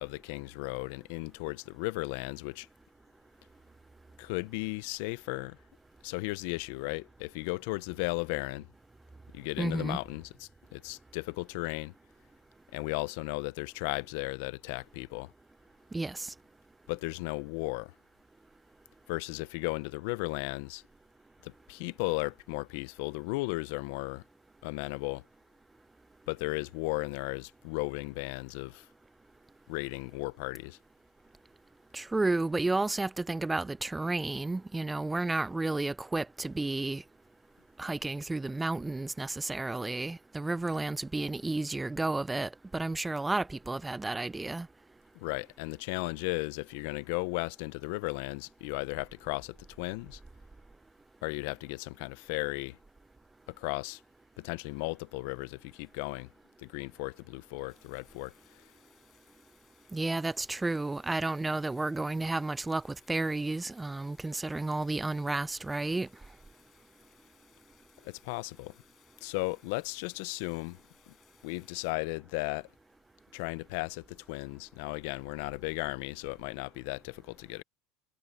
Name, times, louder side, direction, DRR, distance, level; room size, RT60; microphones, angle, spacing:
voice 1, 0.0-2.7 4.2-5.6 6.0-8.7 9.3-11.9 12.7-15.3 16.9-17.9 19.1-20.8 21.4-24.2 24.6-25.2 26.3-28.9 29.7-30.8 45.1-50.2 51.2-52.8 53.5-54.0 54.4-56.3 56.6-58.6 68.0-68.7 69.2-70.8 71.1-71.2 71.4-72.7 73.3-77.6, left 24 dB, 65° left, 0.7 m, -35 dB
voice 2, 9.6-10.0 15.9-16.3 31.9-37.0 37.8-44.7 59.9-66.1, right 2 dB, 10° right, 0.5 m, -32 dB
sound 1, 57.7-71.9, left 12 dB, 40° left, 7.5 m, -66 dB
supercardioid pair, 125°, 0 cm